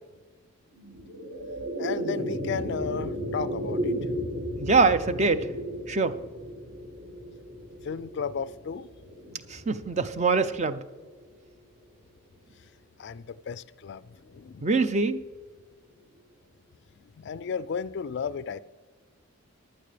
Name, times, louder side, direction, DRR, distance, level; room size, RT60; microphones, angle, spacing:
sound 1, 0.7-11.3, equal, 50° right, 1.8 m, -35 dB
voice 1, 1.8-3.9 7.8-9.2 13.0-14.7 17.0-18.6, left 6 dB, 50° left, 0.3 m, -34 dB
voice 2, 4.6-5.5 5.9-6.2 9.5-10.8 14.6-15.2, right 4 dB, 30° right, 0.5 m, -24 dB
15.5 x 11.5 x 3.3 m
head